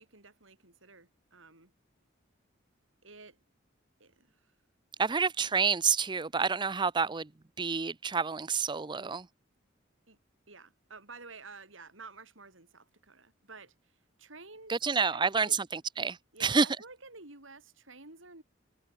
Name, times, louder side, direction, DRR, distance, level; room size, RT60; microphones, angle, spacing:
voice 1, 0.0-1.7 3.0-3.4 4.0-4.5 5.1-5.2 10.1-10.2 10.5-15.6 16.3-16.5 16.8-18.4, right 3 dB, 75° right, 6.4 m, -51 dB
voice 2, 5.0-7.3 7.6-9.3 14.7-16.7, right 5 dB, 25° right, 0.6 m, -28 dB
head